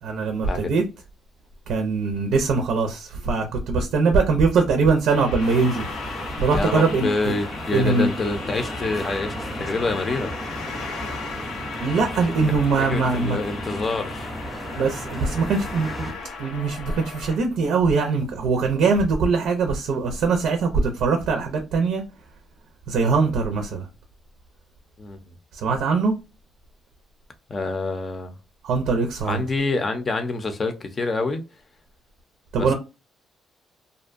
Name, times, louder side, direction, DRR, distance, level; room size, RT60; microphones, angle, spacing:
voice 1, 0.0-0.8 1.7-5.8 6.4-7.1 7.7-8.1 11.8-13.4 14.8-16.1 16.4-22.0 22.9-23.9 25.5-26.2 28.6-29.4 32.5-32.7, right 4 dB, 80° right, 0.5 m, -22 dB
sound 1, 5.1-17.4, left 4 dB, 85° left, 0.5 m, -36 dB
sound 2, 5.4-16.1, equal, 20° right, 0.6 m, -35 dB
voice 2, 6.5-10.3 12.8-14.3 25.0-25.3 27.5-28.3 29.2-31.4 32.6-32.7, left 3 dB, 35° left, 0.6 m, -27 dB
2.5 x 2.2 x 2.4 m
cardioid pair, 90°, 0 cm